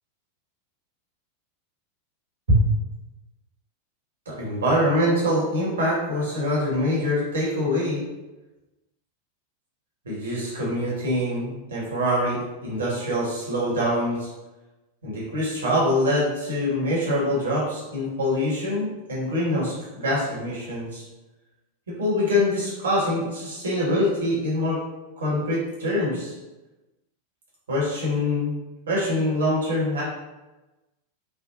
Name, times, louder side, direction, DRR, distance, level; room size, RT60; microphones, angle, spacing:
voice 1, 4.3-8.0 10.0-14.3 15.0-21.0 21.9-24.8 25.2-26.3 27.7-30.0, left 1 dB, 65° right, -6 dB, 1.2 m, -24 dB
3.5 x 2.2 x 2.5 m, 1.1 s
figure-of-eight pair, 90°, 0 cm